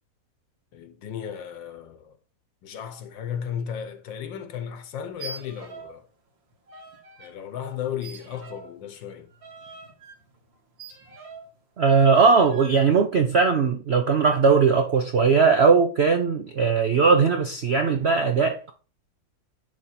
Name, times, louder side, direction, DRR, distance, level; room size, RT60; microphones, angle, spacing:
voice 1, 0.7-2.2 2.6-6.1 7.2-9.3, left 8 dB, 80° left, 1.5 m, -35 dB
sound 1, 5.1-6.0 6.3-7.3 8.0-11.6 12.1-12.8, right 4 dB, 80° right, 2.3 m, -44 dB
voice 2, 11.8-18.7, right 5 dB, 60° right, 0.6 m, -19 dB
10.5 x 3.6 x 4.3 m
omnidirectional pair, 2.0 m